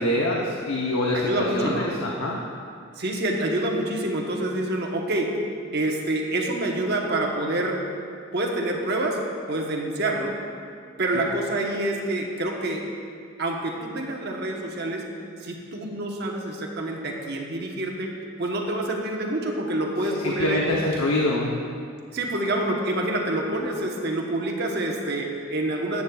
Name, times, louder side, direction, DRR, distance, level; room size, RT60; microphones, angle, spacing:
voice 1, 0.0-2.4 20.2-21.6, left 1 dB, 75° left, -1 dB, 0.8 m, -25 dB
voice 2, 1.1-1.9 3.0-5.4 5.7-7.8 8.3-10.4 11.0-12.9 13.4-15.1 15.4-20.8 22.1-26.0, right 1 dB, 50° right, 0 dB, 1.0 m, -27 dB
14.5 x 9.5 x 2.3 m, 2.3 s
head